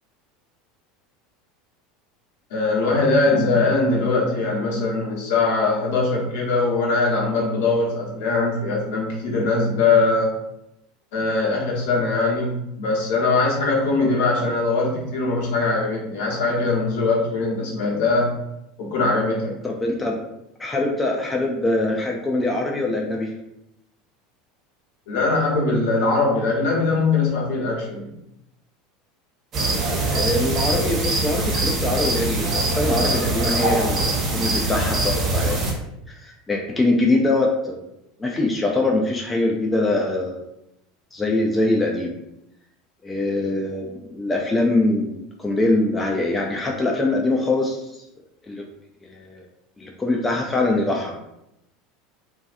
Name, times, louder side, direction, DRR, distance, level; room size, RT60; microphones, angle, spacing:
voice 1, 2.5-10.3 11.1-18.4 18.8-19.5 25.1-28.1, left 3 dB, 65° left, -3 dB, 0.9 m, -21 dB
voice 2, 19.6-20.2 20.6-23.3 30.1-35.6 36.1-37.8 38.2-40.5 41.1-42.1 43.0-48.0 48.4-48.6 49.0-49.4 49.8-51.1, left 2 dB, 15° left, 0 dB, 0.4 m, -23 dB
sound 1, 29.5-35.7, right 2 dB, 40° right, 0.7 m, -23 dB
2.6 x 2.3 x 2.4 m, 0.85 s
hypercardioid pair, 80°, 0 cm